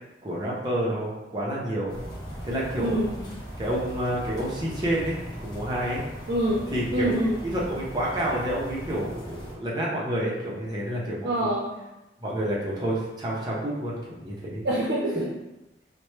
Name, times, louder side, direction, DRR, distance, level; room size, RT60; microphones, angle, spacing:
voice 1, 0.2-2.0 2.4-3.0 3.6-6.0 6.7-7.1 7.4-11.5 12.2-14.6, right 1 dB, 25° right, -5 dB, 0.7 m, -29 dB
sound 1, 1.9-9.5, equal, 25° left, 0.9 m, -38 dB
voice 2, 2.8-3.2 6.3-7.4 11.2-11.8 14.6-15.3, right 1 dB, 65° right, -5 dB, 0.6 m, -26 dB
4.3 x 2.1 x 3.1 m, 0.97 s
head